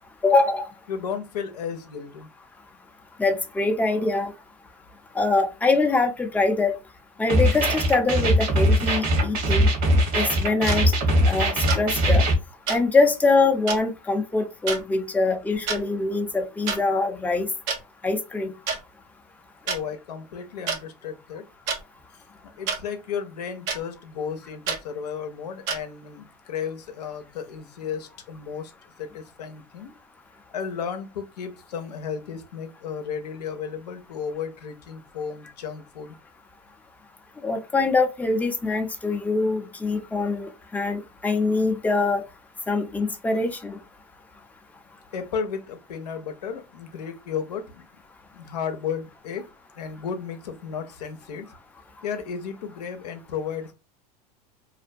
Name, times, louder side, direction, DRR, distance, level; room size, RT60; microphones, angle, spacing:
voice 1, 0.2-0.6 3.2-4.3 5.2-6.7 7.2-9.7 10.1-10.9 11.3-12.2 12.7-17.5 18.0-18.5 37.4-42.2 42.7-43.8, left 3 dB, 10° left, 0.6 m, -23 dB
voice 2, 0.9-2.3 19.6-21.5 22.4-28.7 29.0-29.9 30.5-36.1 45.1-47.8 48.3-49.5 49.8-51.5 52.0-53.7, left 7 dB, 85° left, 0.6 m, -33 dB
sound 1, 7.3-12.3, equal, 45° right, 1.1 m, -21 dB
sound 2, 10.7-10.8 11.7-11.8 12.7-12.8 13.7-13.8 14.7-14.8 15.5-15.8 16.7-16.8 17.7-17.8 18.7-18.8 19.7-19.8 20.7-20.8 21.7-21.8 22.7-22.8 23.7-23.8 24.7-24.8 25.7-25.8, right 5 dB, 65° right, 0.8 m, -27 dB
2.5 x 2.2 x 2.6 m
hypercardioid pair, 95°, 20 cm